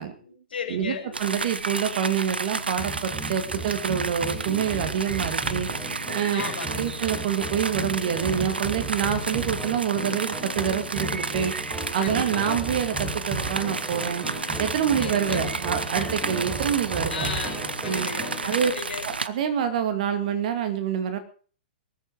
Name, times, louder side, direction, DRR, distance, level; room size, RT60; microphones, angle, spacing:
voice 1, 0.1-1.1 6.3-6.9 12.0-12.6 15.0-15.5 17.1-19.1, left 5 dB, 70° left, 2 dB, 6.1 m, -35 dB
voice 2, 0.7-5.7 6.1-11.5 11.9-14.3 14.6-17.3 17.9-18.1 18.4-18.7 19.0-21.2, right 8 dB, 50° right, 9 dB, 2.4 m, -27 dB
sound 1, 1.1-19.3, right 4 dB, 80° right, 0.9 m, -32 dB
sound 2, 2.8-18.4, right 2 dB, 15° right, 4.2 m, -35 dB
23.0 x 8.3 x 4.9 m, 0.42 s
figure-of-eight pair, 110°, 5 cm